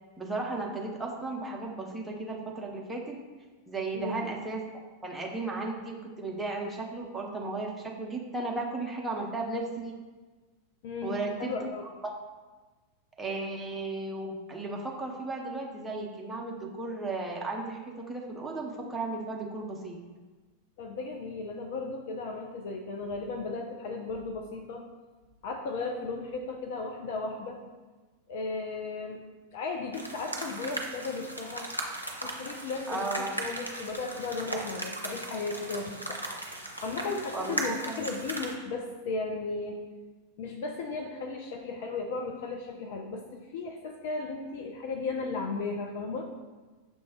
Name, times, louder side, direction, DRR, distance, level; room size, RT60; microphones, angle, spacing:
voice 1, 0.2-3.2 3.7-4.6 5.0-10.0 11.0-11.5 12.0-12.1 13.2-20.0 32.9-33.3 37.3-38.0, right 3 dB, 10° right, -2 dB, 0.7 m, -35 dB
voice 2, 10.8-12.0 20.8-24.9 25.4-27.6 28.3-29.2 29.5-31.7 32.2-36.3 36.8-39.8 40.4-46.3, left 3 dB, 50° left, 3 dB, 0.4 m, -35 dB
sound 1, 29.9-38.5, right 1 dB, 90° right, 0.5 m, -37 dB
6.1 x 2.3 x 3.6 m, 1.3 s
figure-of-eight pair, 90°, 0 cm